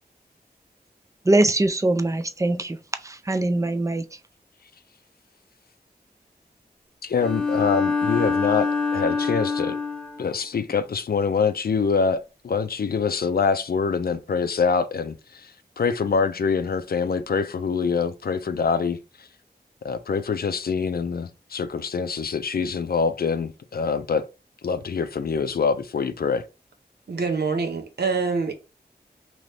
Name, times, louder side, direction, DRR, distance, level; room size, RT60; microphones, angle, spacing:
voice 1, 1.3-2.8 3.0-4.0, right 2 dB, 20° right, 0.4 m, -22 dB
voice 2, 7.0-9.8 10.2-15.5 15.8-19.3 19.8-24.3 24.6-26.5, left 5 dB, 65° left, 0.4 m, -25 dB
Bowed string instrument, 7.2-10.3, left 4 dB, 5° left, 0.9 m, -25 dB
voice 3, 27.1-28.5, right 4 dB, 70° right, 0.7 m, -25 dB
3.0 x 2.6 x 3.3 m
cardioid pair, 50°, 17 cm